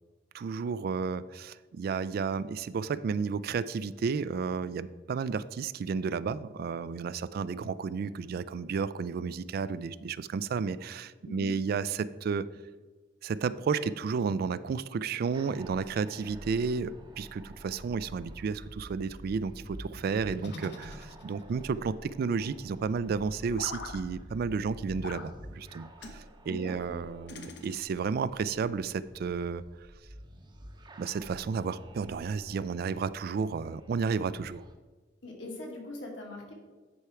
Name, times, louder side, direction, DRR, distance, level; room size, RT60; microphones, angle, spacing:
voice 1, 0.3-12.5 13.2-29.6 31.0-34.6, right 5 dB, 55° right, 17 dB, 0.3 m, -32 dB
sound 1, 15.3-34.7, right 1 dB, 25° right, 0.7 m, -49 dB
sound 2, 20.4-21.6 23.5-24.0 25.0-25.3 26.0-26.2 27.3-28.1, left 3 dB, 65° left, 0.8 m, -43 dB
voice 2, 26.5-27.0 35.2-36.5, left 1 dB, 90° left, -1 dB, 2.2 m, -41 dB
9.8 x 4.4 x 4.8 m, 1.3 s
head